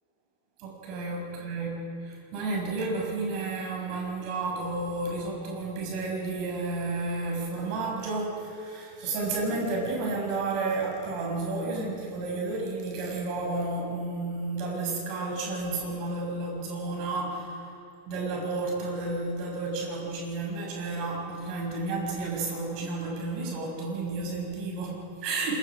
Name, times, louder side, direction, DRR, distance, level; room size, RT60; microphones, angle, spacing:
voice 1, 0.6-17.6 18.1-25.6, right 3 dB, 45° right, -1 dB, 6.8 m, -31 dB
27.0 x 22.0 x 5.1 m, 2.8 s
figure-of-eight pair, 90°, 0 cm